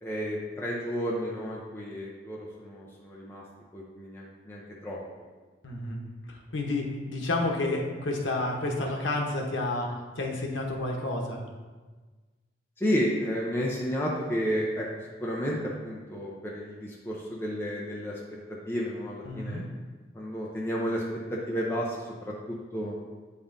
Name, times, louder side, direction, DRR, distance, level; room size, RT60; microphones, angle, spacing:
voice 1, 0.0-3.4 3.7-5.0 12.8-14.9 15.2-18.2 18.5-19.6 20.1-21.0 21.3-22.9, equal, 10° left, -5 dB, 0.6 m, -32 dB
voice 2, 5.6-6.0 6.3-11.4 19.2-19.6, left 2 dB, 85° left, 0 dB, 1.0 m, -30 dB
8.4 x 5.4 x 2.6 m, 1.3 s
head